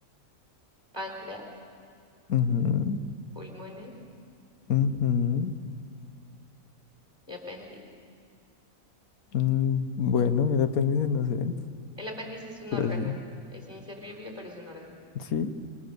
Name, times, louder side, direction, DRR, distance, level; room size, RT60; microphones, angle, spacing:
voice 1, 0.9-1.5 3.3-3.9 7.3-7.8 12.0-13.2 13.5-15.0, left 1 dB, 15° right, 0 dB, 4.2 m, -40 dB
voice 2, 2.3-3.0 4.7-5.5 9.3-11.6 12.7-13.2 15.1-15.5, left 7 dB, 90° left, 9 dB, 1.5 m, -25 dB
26.5 x 23.0 x 6.8 m, 2.3 s
omnidirectional pair, 1.5 m